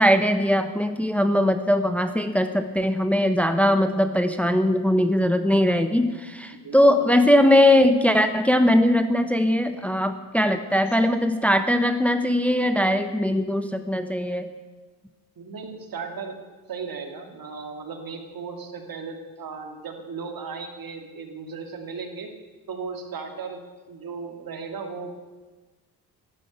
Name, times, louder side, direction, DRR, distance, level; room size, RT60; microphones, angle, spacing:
voice 1, 0.0-14.5, left 1 dB, 5° left, 8 dB, 1.0 m, -20 dB
voice 2, 6.5-7.1 15.4-16.4 16.7-22.3 22.7-23.6 23.9-25.1, right 5 dB, 60° right, 4 dB, 2.4 m, -36 dB
12.5 x 11.0 x 8.0 m, 1.3 s
cardioid pair, 70°, 39 cm